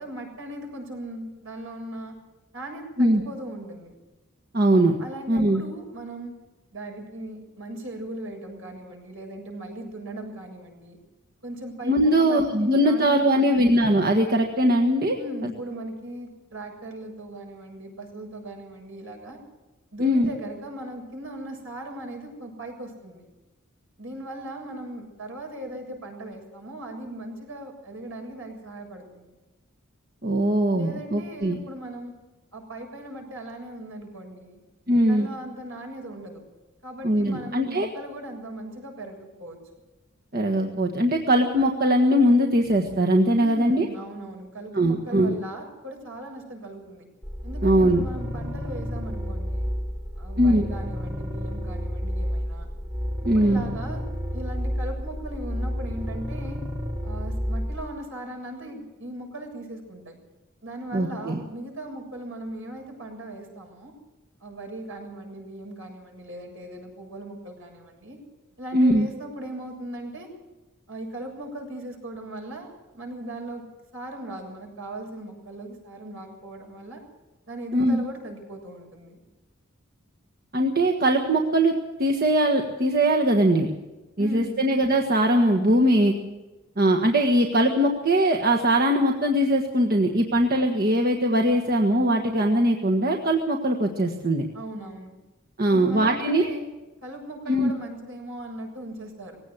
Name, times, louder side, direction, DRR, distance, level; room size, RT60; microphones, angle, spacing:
voice 1, 0.0-2.1 2.5-3.9 5.0-6.3 6.7-11.0 11.4-13.7 15.1-19.4 19.9-23.3 24.0-29.3 30.7-32.1 32.5-34.6 35.1-36.4 36.8-39.6 43.4-47.1 47.4-49.7 50.2-52.7 53.2-54.0 54.3-56.6 57.0-60.2 60.6-63.9 64.4-68.2 68.6-70.3 70.9-73.6 73.9-77.0 77.5-79.2 84.2-84.5 94.5-95.2 95.7-96.7 97.0-99.4, right 1 dB, 70° right, 2 dB, 7.3 m, -38 dB
voice 2, 4.5-5.0 5.3-5.6 11.8-15.2 15.4-15.5 20.0-20.3 30.2-31.6 34.9-35.3 37.0-37.9 40.3-43.9 44.7-45.3 47.6-48.0 50.4-50.7 53.2-53.6 60.9-61.4 68.7-69.1 77.7-78.0 80.5-83.7 84.2-86.1 86.8-94.4 95.6-96.5 97.5-97.7, right 1 dB, 45° right, 2 dB, 1.5 m, -21 dB
sound 1, 47.2-57.9, equal, 15° right, 1.5 m, -30 dB
19.5 x 17.0 x 8.0 m, 1.1 s
head